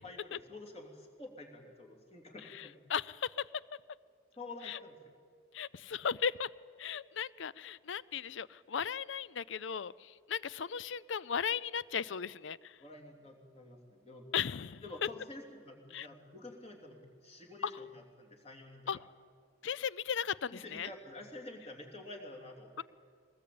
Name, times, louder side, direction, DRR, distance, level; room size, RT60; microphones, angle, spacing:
voice 1, 0.0-2.8 4.4-5.0 12.8-14.3 14.8-19.0 20.5-22.8, left 2 dB, 30° left, 2 dB, 3.1 m, -49 dB
voice 2, 2.9-3.4 4.7-4.8 5.5-6.5 6.8-12.7 14.3-14.8 15.9-16.1 18.9-19.0 19.6-20.9 22.8-22.9, left 7 dB, 70° left, 20 dB, 0.5 m, -36 dB
22.5 x 19.0 x 8.7 m, 2.1 s
head